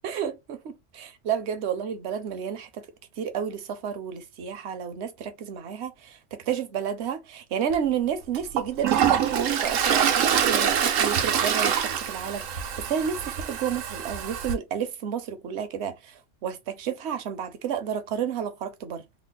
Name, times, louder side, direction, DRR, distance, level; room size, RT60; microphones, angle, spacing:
voice 1, 0.0-2.9 3.2-19.1, right 8 dB, 65° right, 0.9 m, -31 dB
Toilet flush, 7.7-7.8 8.3-14.5, right 8 dB, 85° right, 1.0 m, -25 dB
3.3 x 2.0 x 3.9 m
omnidirectional pair, 1.3 m